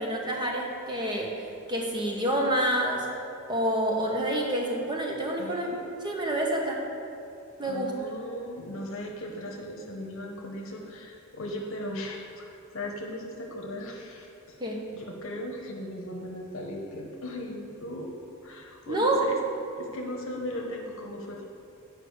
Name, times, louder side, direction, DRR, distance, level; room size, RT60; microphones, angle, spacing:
voice 1, 0.0-3.2 3.5-5.7 6.0-6.8 7.6-8.0 14.6-14.9 18.9-19.3, right 1 dB, 20° right, -1 dB, 1.1 m, -28 dB
voice 2, 5.4-5.8 7.6-14.6 14.9-18.2 18.4-19.4 19.8-21.4, left 1 dB, 60° left, 0 dB, 1.0 m, -37 dB
8.5 x 5.0 x 6.3 m, 2.7 s
head